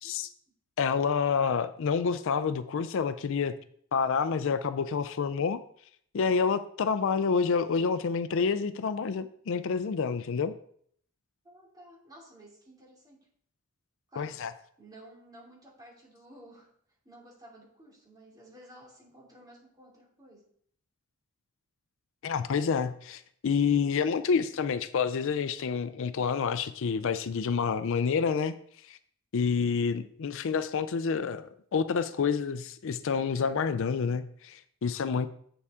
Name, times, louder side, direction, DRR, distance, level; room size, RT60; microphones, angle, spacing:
voice 1, 0.8-3.5 3.9-5.6 6.1-10.5 14.2-14.5 22.2-28.5 28.9-29.0 29.3-35.3, left 5 dB, 60° left, 12 dB, 0.4 m, -28 dB
voice 2, 11.4-13.3 14.1-14.4 14.8-16.7 17.0-20.4, right 1 dB, 20° right, -4 dB, 2.6 m, -53 dB
8.2 x 6.9 x 3.6 m, 0.63 s
head